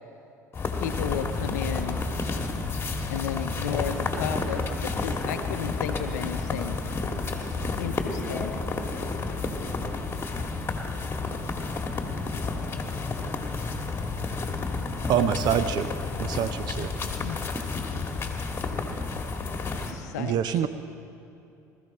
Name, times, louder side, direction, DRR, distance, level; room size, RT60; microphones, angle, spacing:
sound 1, 0.5-19.9, left 3 dB, 25° left, 1.8 m, -31 dB
voice 1, 0.8-2.1 3.1-6.8 7.8-8.5 17.2-17.4 19.7-20.7, left 9 dB, 75° left, 8 dB, 0.6 m, -33 dB
voice 2, 7.9-10.1, equal, 10° left, 1 dB, 3.5 m, -43 dB
voice 3, 15.1-15.9 16.2-16.9 20.2-20.7, right 9 dB, 50° right, 12 dB, 0.6 m, -25 dB
20.5 x 14.0 x 4.2 m, 2.7 s
hypercardioid pair, 70°, 9 cm